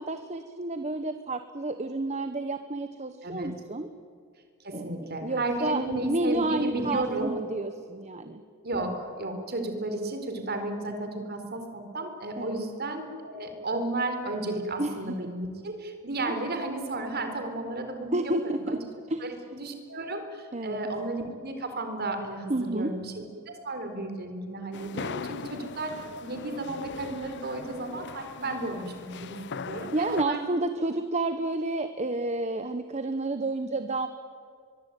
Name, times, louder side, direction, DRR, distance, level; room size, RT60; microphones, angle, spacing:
voice 1, 0.0-3.9 4.7-8.4 12.4-12.7 14.8-15.2 16.3-16.4 18.1-18.8 19.1-19.3 20.5-20.9 22.5-22.9 29.9-34.1, right 2 dB, 30° right, 9 dB, 1.1 m, -30 dB
voice 2, 3.2-3.5 4.6-7.3 8.6-18.8 19.2-23.1 23.5-30.5, right 2 dB, 45° right, 6 dB, 4.2 m, -33 dB
sound 1, 24.7-30.2, left 5 dB, 55° left, 0.6 m, -40 dB
23.5 x 23.0 x 9.3 m, 2.3 s
head